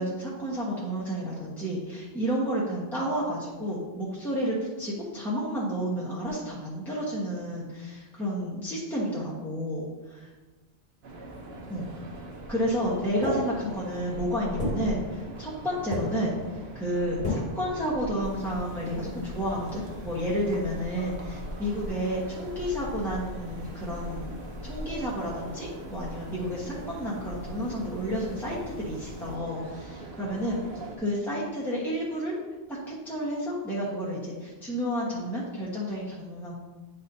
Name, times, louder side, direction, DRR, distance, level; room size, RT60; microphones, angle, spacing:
voice 1, 0.0-10.3 11.7-12.0 12.5-24.3 24.6-30.6 31.0-32.4 32.7-36.5, equal, ahead, -7 dB, 1.1 m, -31 dB
sound 1, 11.0-31.0, right 1 dB, 85° right, 1.1 m, -41 dB
sound 2, 13.2-14.0 14.6-15.6 15.9-16.5 17.2-17.7, left 2 dB, 50° left, 1.6 m, -33 dB
sound 3, 18.2-29.4, equal, 30° left, 1.2 m, -44 dB
9.9 x 4.2 x 2.7 m, 1.3 s
omnidirectional pair, 1.0 m